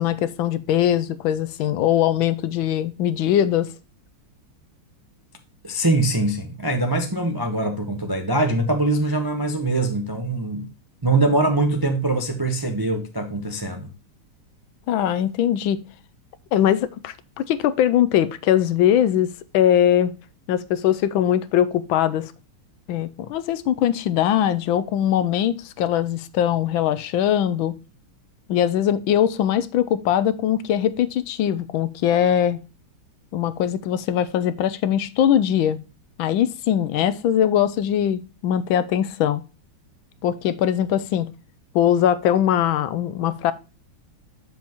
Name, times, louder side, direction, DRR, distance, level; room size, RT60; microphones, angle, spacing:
voice 1, 0.0-3.7 14.9-15.8 16.5-20.1 20.5-22.3 22.9-27.7 28.5-32.6 33.3-35.8 36.2-39.4 40.2-41.3 41.7-43.5, left 10 dB, 75° left, 1.3 m, -21 dB
voice 2, 5.6-10.7 11.0-13.9, right 2 dB, 35° right, 0.3 m, -23 dB
7.5 x 7.1 x 2.9 m
omnidirectional pair, 2.3 m